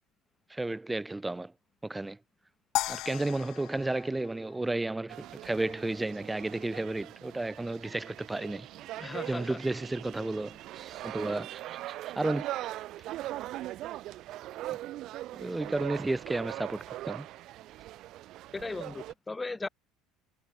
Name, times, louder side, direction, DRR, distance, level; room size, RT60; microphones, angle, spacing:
voice 1, 0.5-1.5 1.8-2.2 2.9-8.7 9.3-10.6 11.0-11.5 12.1-12.5 15.3-17.3, right 2 dB, 10° right, 0.8 m, -32 dB
sound 1, 2.7-5.1, left 18 dB, 60° left, 0.7 m, -36 dB
sound 2, 5.1-19.1, right 15 dB, 55° right, 1.1 m, -41 dB
Laughter, 8.3-14.1, right 9 dB, 35° right, 5.9 m, -56 dB
voice 2, 9.0-9.6 18.5-19.7, left 3 dB, 10° left, 0.3 m, -37 dB
cardioid pair, 140°, 0 cm